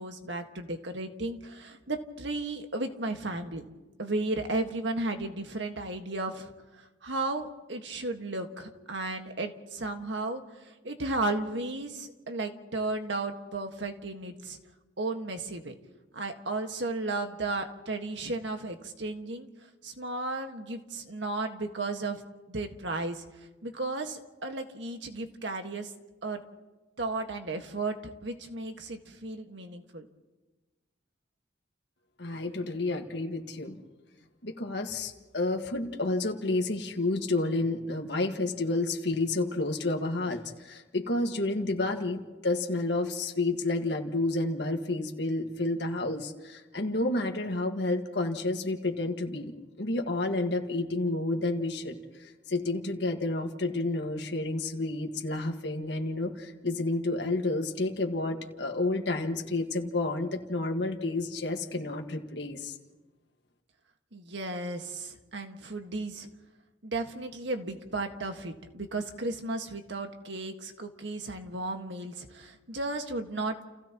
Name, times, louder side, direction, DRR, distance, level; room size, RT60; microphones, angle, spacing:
voice 1, 0.0-3.6 4.0-6.5 7.0-14.6 15.0-15.7 16.1-19.5 19.8-22.2 22.5-23.2 23.6-25.9 26.2-26.4 27.0-30.1 64.1-66.3 66.8-73.6, right 2 dB, 75° right, 5 dB, 1.7 m, -34 dB
voice 2, 32.2-33.8 34.4-51.9 52.5-62.7, left 2 dB, 65° left, 3 dB, 1.8 m, -30 dB
30.0 x 29.5 x 3.0 m, 1.2 s
head